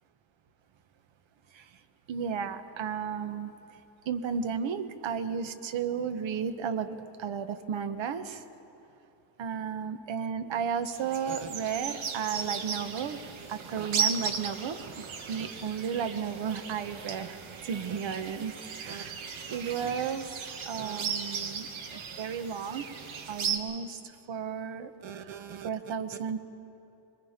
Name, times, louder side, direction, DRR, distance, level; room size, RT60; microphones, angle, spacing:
voice 1, 2.1-3.5 4.0-8.4 9.4-13.2 13.5-17.4 17.6-19.2 19.5-21.7 21.9-22.8 23.3-24.0 24.3-26.4, right 7 dB, 75° right, 9 dB, 1.2 m, -34 dB
sound 1, 10.8-23.6, right 6 dB, 90° right, 1.6 m, -36 dB
25.5 x 22.0 x 5.2 m, 2.9 s
cardioid pair, 100°, 46 cm